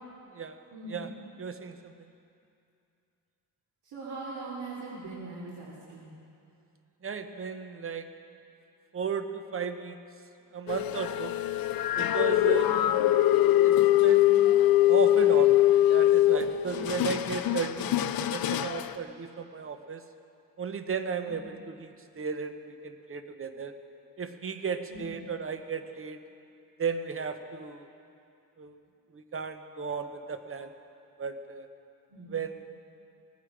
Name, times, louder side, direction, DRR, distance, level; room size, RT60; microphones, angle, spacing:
voice 1, 0.7-1.1 3.8-6.1 12.6-12.9 16.6-16.9 21.2-21.3 24.9-25.1 32.1-32.3, right 2 dB, 80° right, -7 dB, 3.0 m, -41 dB
voice 2, 1.4-2.1 7.0-8.1 8.9-10.0 10.5-11.4 12.0-12.7 13.6-15.6 15.9-20.0 20.6-23.7 24.2-26.2 26.8-27.9 28.6-28.8 29.1-30.7 31.2-31.7 32.3-32.6, right 6 dB, 35° right, 8 dB, 0.9 m, -35 dB
sound 1, 10.7-18.9, left 14 dB, 70° left, 0.6 m, -23 dB
19.0 x 15.5 x 4.9 m, 2.6 s
wide cardioid pair, 140°, 37 cm